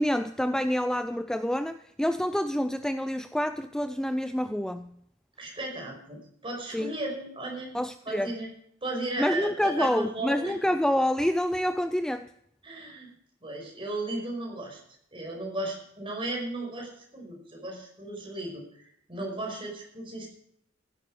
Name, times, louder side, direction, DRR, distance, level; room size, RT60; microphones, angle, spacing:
voice 1, 0.0-4.9 6.7-6.9 7.7-8.3 9.2-12.3, equal, 5° left, 10 dB, 0.4 m, -27 dB
voice 2, 5.4-7.8 8.1-8.5 8.8-10.5 12.6-13.1 13.4-14.8 15.1-20.3, right 2 dB, 30° right, 0 dB, 5.5 m, -35 dB
16.0 x 11.5 x 4.9 m, 0.71 s
head